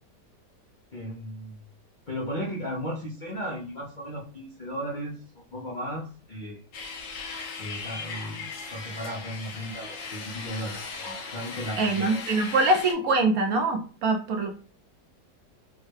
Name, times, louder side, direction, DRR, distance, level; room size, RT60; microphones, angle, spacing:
voice 1, 0.9-1.6 2.1-5.2 5.5-6.6 7.6-12.2, equal, 60° left, -4 dB, 0.5 m, -35 dB
sound 1, 6.7-12.9, left 4 dB, 80° left, 1.4 m, -38 dB
voice 2, 11.8-14.5, right 2 dB, 65° right, 4 dB, 1.0 m, -24 dB
3.7 x 2.1 x 3.2 m, 0.40 s
omnidirectional pair, 1.9 m